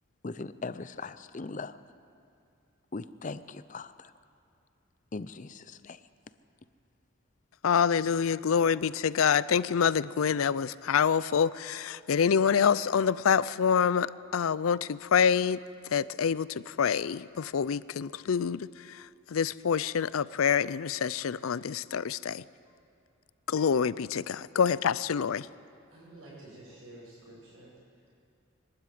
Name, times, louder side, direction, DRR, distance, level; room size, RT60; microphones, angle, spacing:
voice 1, 0.2-1.8 2.9-4.1 5.1-6.0, left 3 dB, 40° left, 14 dB, 0.6 m, -39 dB
voice 2, 7.6-15.6 15.9-22.4 23.5-25.5, left 7 dB, 85° left, 19 dB, 0.5 m, -26 dB
voice 3, 25.9-27.7, right 1 dB, 85° right, -10 dB, 6.3 m, -50 dB
23.0 x 12.5 x 9.2 m, 2.5 s
head